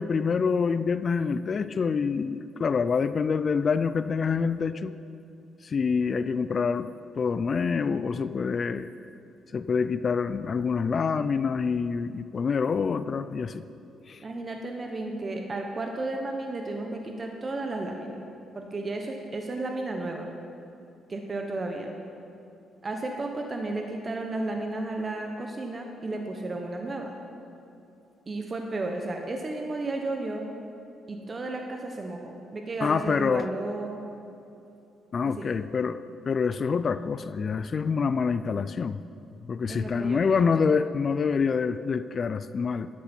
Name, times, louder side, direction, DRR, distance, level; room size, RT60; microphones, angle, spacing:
voice 1, 0.0-4.9 5.6-8.9 9.5-13.6 14.1-14.2 32.8-33.5 35.1-39.0 39.5-42.9, left 5 dB, 45° left, 13 dB, 0.3 m, -26 dB
voice 2, 14.2-18.2 18.5-20.3 21.1-21.9 22.8-27.2 28.3-30.5 31.1-34.0 35.2-35.6 39.7-40.7, right 2 dB, 35° right, 3 dB, 1.0 m, -33 dB
12.0 x 11.0 x 4.4 m, 2.7 s
cardioid pair, 90°, 0 cm